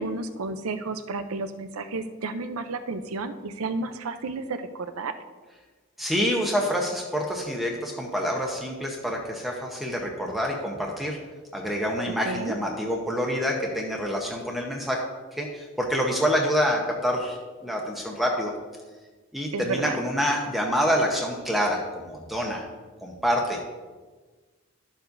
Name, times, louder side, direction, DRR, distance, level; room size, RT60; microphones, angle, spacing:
voice 1, 0.0-5.1 12.2-12.6 19.5-20.0, right 3 dB, 85° right, 9 dB, 0.6 m, -31 dB
voice 2, 6.0-11.2 11.5-15.0 15.3-17.4 17.6-18.5 19.3-22.6 23.0-23.6, equal, ahead, -1 dB, 0.8 m, -27 dB
12.0 x 7.0 x 2.6 m, 1.3 s
head